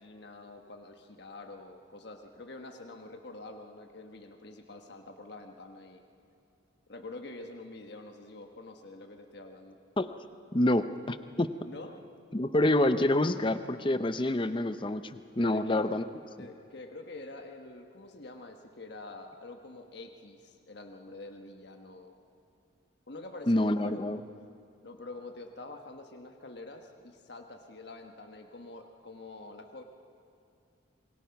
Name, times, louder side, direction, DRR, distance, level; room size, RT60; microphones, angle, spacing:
voice 1, 0.0-6.0 6.9-9.8 11.6-12.0 15.4-15.9 16.4-22.2 23.1-24.0 24.8-29.8, left 2 dB, 55° left, 4 dB, 1.4 m, -46 dB
voice 2, 10.5-11.5 12.3-16.1 23.5-24.2, left 1 dB, 25° left, 11 dB, 0.7 m, -27 dB
27.0 x 22.0 x 5.9 m, 2.5 s
head